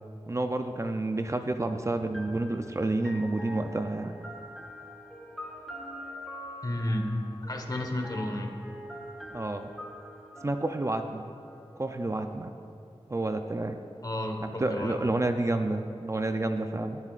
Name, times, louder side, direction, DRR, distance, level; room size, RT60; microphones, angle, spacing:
voice 1, 0.3-4.1 9.3-9.7 10.4-11.3 11.8-12.5 13.1-13.8 14.4-17.0, right 2 dB, 30° right, 6 dB, 0.5 m, -29 dB
sound 1, 2.1-11.9, equal, 5° left, 1.5 m, -44 dB
voice 2, 6.6-7.1 7.4-8.5 14.0-14.9, left 1 dB, 40° left, 3 dB, 1.4 m, -32 dB
18.0 x 11.0 x 2.5 m, 2.4 s
wide cardioid pair, 80°, 11 cm